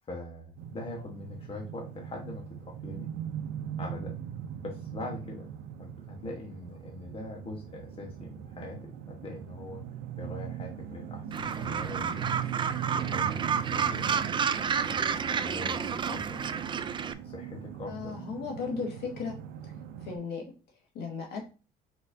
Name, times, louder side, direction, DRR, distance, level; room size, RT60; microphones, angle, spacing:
voice 1, 0.1-2.4 2.8-3.1 3.8-4.1 4.6-5.5 5.8-9.8 10.2-12.4 12.9-14.2 14.9-16.4 17.2-18.2, left 2 dB, 35° left, 0 dB, 1.2 m, -42 dB
sound 1, 0.6-20.2, right 9 dB, 90° right, 0.6 m, -40 dB
Gull seagull, 11.3-17.1, right 7 dB, 30° right, 0.3 m, -30 dB
voice 2, 17.9-19.3 20.0-20.4 21.0-21.4, left 5 dB, 75° left, 0 dB, 1.7 m, -35 dB
4.5 x 4.2 x 2.6 m, 0.34 s
cardioid pair, 110°, 17 cm